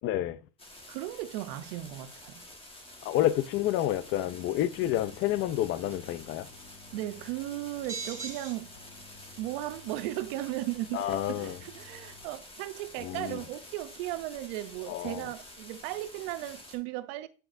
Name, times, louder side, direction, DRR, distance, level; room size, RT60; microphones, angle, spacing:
voice 1, 0.0-0.4 3.0-6.5 10.9-11.6 13.0-13.4 14.9-15.2, left 13 dB, 40° left, 0.4 m, -29 dB
sound 1, 0.6-16.8, left 1 dB, 15° left, 1.4 m, -50 dB
voice 2, 0.9-2.4 6.9-8.7 9.4-17.3, right 15 dB, 80° right, 0.6 m, -36 dB
sound 2, 4.8-12.2, left 2 dB, 80° left, 2.6 m, -55 dB
sound 3, 5.1-5.4 7.7-8.5 9.1-9.3 9.6-10.0, right 4 dB, 10° right, 3.2 m, -39 dB
8.3 x 4.8 x 2.5 m
cardioid pair, 145°, 32 cm